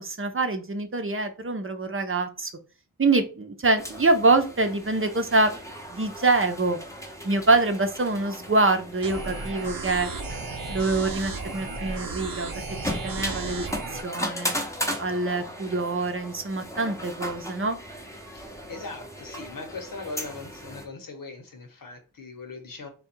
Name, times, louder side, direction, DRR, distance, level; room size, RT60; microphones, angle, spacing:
voice 1, 0.0-2.5 3.0-5.5 5.9-6.8 7.2-10.1 10.7-12.5 12.8-14.6 15.0-17.8, right 3 dB, 40° right, 7 dB, 0.6 m, -25 dB
sound 1, 3.8-20.9, equal, 10° left, 0.7 m, -37 dB
sound 2, 9.0-14.0, right 3 dB, 85° right, 0.8 m, -34 dB
voice 2, 18.3-22.9, left 3 dB, 80° left, 5 dB, 1.0 m, -40 dB
3.7 x 2.3 x 4.4 m, 0.35 s
wide cardioid pair, 75°, 33 cm